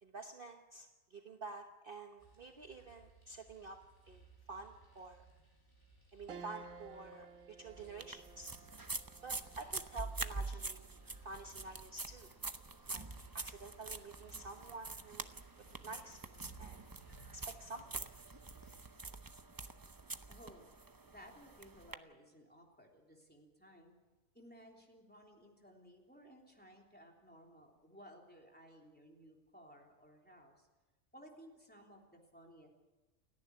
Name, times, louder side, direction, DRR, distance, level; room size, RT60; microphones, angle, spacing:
voice 1, 0.0-3.8 4.1-5.2 6.1-8.5 9.2-10.9 11.2-12.3 12.9-13.1 13.3-15.3 15.6-16.8 17.3-18.1, right 3 dB, 45° right, 4 dB, 1.3 m, -49 dB
sound 1, 2.2-19.0, right 4 dB, 35° left, 5.1 m, -62 dB
sound 2, 6.3-15.9 16.4-16.5 17.8-18.2, right 5 dB, 75° right, 1.6 m, -58 dB
sound 3, 8.0-21.9, right 3 dB, 20° right, 0.6 m, -46 dB
voice 2, 20.3-20.7 21.0-24.0 24.3-30.7 31.1-32.7, equal, 5° left, 0 dB, 3.4 m, -58 dB
29.5 x 10.5 x 9.8 m, 1.1 s
omnidirectional pair, 1.4 m